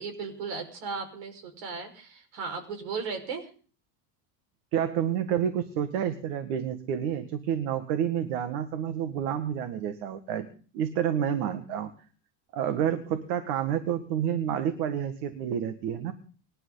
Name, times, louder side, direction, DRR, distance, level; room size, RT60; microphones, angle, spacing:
voice 1, 0.0-3.5, right 5 dB, 70° right, 6 dB, 5.6 m, -36 dB
voice 2, 4.7-10.5 10.7-11.9 12.5-16.1, right 9 dB, 85° right, 8 dB, 2.0 m, -29 dB
25.0 x 11.5 x 4.0 m, 0.41 s
cardioid pair, 130°, 44 cm